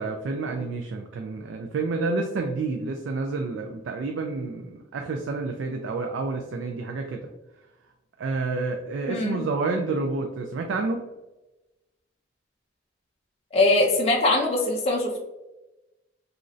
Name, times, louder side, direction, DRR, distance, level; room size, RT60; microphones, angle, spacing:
voice 1, 0.0-7.3 8.2-11.1, right 3 dB, 75° right, 3 dB, 0.3 m, -29 dB
voice 2, 9.1-9.4 13.5-15.2, left 2 dB, 30° left, -2 dB, 0.5 m, -22 dB
3.0 x 2.4 x 2.5 m, 1.0 s
head